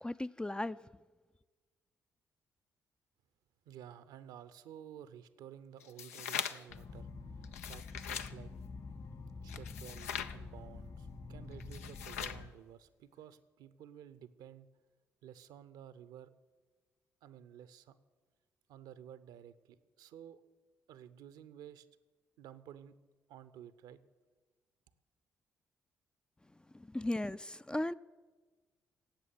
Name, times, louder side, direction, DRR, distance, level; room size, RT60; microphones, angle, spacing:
voice 1, 0.0-0.8 26.7-27.9, left 1 dB, 10° left, 0.4 m, -36 dB
voice 2, 3.7-8.5 9.4-14.7 15.2-16.3 17.2-18.0 18.7-20.4 20.9-21.9 22.4-23.0 23.3-24.0, right 10 dB, 65° right, 0.7 m, -53 dB
sound 1, 5.8-6.8 7.4-8.3 9.5-10.4 11.6-12.5, left 8 dB, 80° left, 0.5 m, -41 dB
sound 2, 6.7-12.5, left 4 dB, 50° left, 1.9 m, -47 dB
16.0 x 8.4 x 9.4 m
figure-of-eight pair, 40°, 8 cm